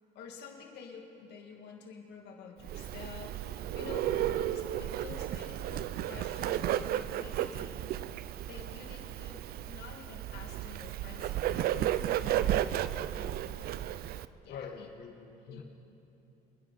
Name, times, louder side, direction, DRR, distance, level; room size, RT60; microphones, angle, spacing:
voice 1, 0.1-7.8 8.4-12.6 13.1-14.0 14.4-14.9 15.5-15.6, left 5 dB, 80° left, 1 dB, 2.4 m, -49 dB
Bird, 2.6-14.3, right 12 dB, 65° right, 0.4 m, -33 dB
voice 2, 3.9-4.3 14.5-15.6, left 6 dB, 60° left, 6 dB, 1.4 m, -45 dB
28.5 x 10.5 x 4.1 m, 3.0 s
cardioid pair, 110°, 17 cm